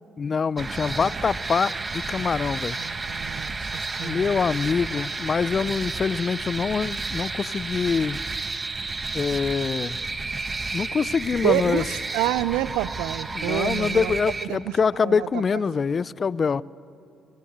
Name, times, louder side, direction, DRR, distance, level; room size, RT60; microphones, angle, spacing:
voice 1, 0.2-2.8 4.0-8.2 9.1-10.0 10.7-11.8 13.3-16.6, left 5 dB, 45° left, 20 dB, 0.5 m, -25 dB
sound 1, 0.6-14.5, right 3 dB, 30° right, 1.7 m, -31 dB
voice 2, 2.8-4.4 11.4-14.2 14.5-14.8 15.0-15.4, right 15 dB, 85° right, 19 dB, 0.5 m, -28 dB
26.0 x 24.0 x 8.1 m, 2.7 s
supercardioid pair, 65°, 0 cm